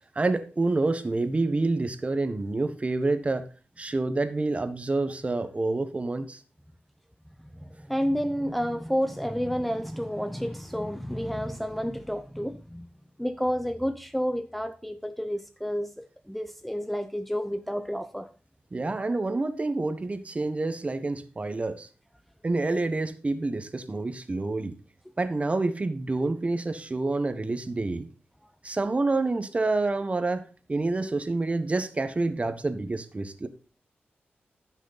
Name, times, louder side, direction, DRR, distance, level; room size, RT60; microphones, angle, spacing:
voice 1, 0.1-3.4 3.8-6.4 18.7-21.9 22.4-24.7 25.2-28.1 28.6-33.5, right 2 dB, 35° right, 1.2 m, -28 dB
voice 2, 7.4-12.9 13.2-18.3, equal, 5° left, 0.7 m, -30 dB
14.5 x 6.2 x 4.1 m
cardioid pair, 75°, 4 cm